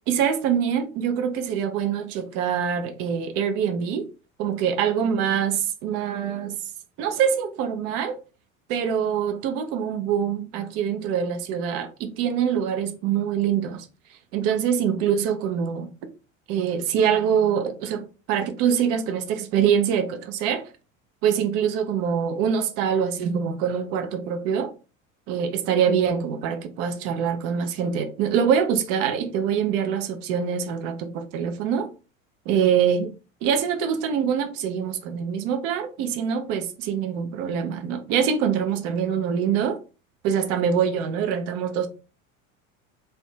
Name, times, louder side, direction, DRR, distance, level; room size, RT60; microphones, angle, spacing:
voice 1, 0.1-4.1 4.4-6.5 7.0-8.2 8.7-13.9 14.3-15.9 16.5-20.6 21.2-24.7 25.3-31.9 32.5-33.1 33.4-39.8 40.2-41.9, right 8 dB, 40° right, 0.5 m, -24 dB
2.5 x 2.2 x 2.6 m
figure-of-eight pair, 70°, 40 cm